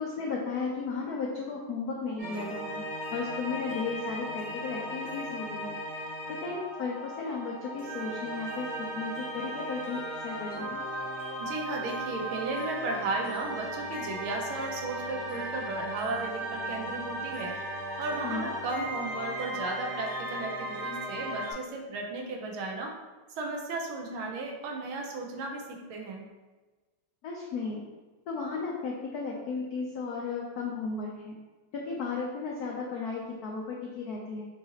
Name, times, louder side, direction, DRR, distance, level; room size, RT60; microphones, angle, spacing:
voice 1, 0.0-2.8 3.1-6.0 6.3-10.8 18.2-18.5 27.2-27.8 28.3-31.3 31.7-34.4, left 4 dB, 85° left, -1 dB, 0.8 m, -35 dB
sound 1, 2.2-21.5, right 1 dB, 60° right, 2.3 m, -37 dB
voice 2, 11.4-17.5 18.0-22.9 23.4-26.2, right 3 dB, 80° right, 1 dB, 1.5 m, -35 dB
6.3 x 2.7 x 2.9 m, 1.2 s
omnidirectional pair, 2.3 m